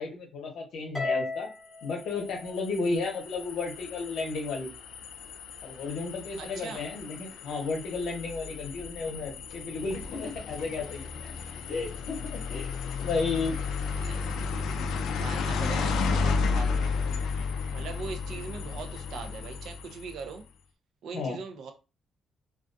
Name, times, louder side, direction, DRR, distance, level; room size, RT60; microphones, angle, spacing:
voice 1, 0.0-1.5 1.8-4.7 5.6-11.1 11.7-13.6 21.1-21.4, left 4 dB, 60° left, 1 dB, 0.8 m, -33 dB
Harp, 0.9-3.4, left 3 dB, 5° left, 0.7 m, -37 dB
sound 1, 1.8-20.3, left 4 dB, 80° left, 0.3 m, -33 dB
voice 2, 6.4-6.8 14.0-14.2 15.2-16.9 17.7-20.4 21.0-21.7, right 5 dB, 60° right, 6 dB, 0.5 m, -41 dB
2.4 x 2.2 x 2.5 m, 0.31 s
cardioid pair, 175°, 0 cm